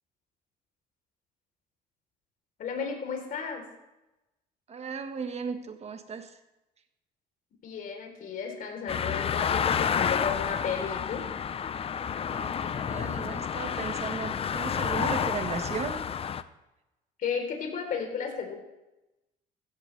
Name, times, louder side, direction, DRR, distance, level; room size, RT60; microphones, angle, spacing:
voice 1, 2.6-3.6 7.6-11.3 17.2-18.6, left 6 dB, 55° left, 3 dB, 3.6 m, -33 dB
voice 2, 4.7-6.3 12.3-16.0, right 5 dB, 40° right, 7 dB, 1.4 m, -36 dB
sound 1, 8.9-16.4, left 7 dB, 35° left, 0.6 m, -30 dB
15.0 x 14.5 x 3.3 m, 0.98 s
cardioid pair, 110°, 17 cm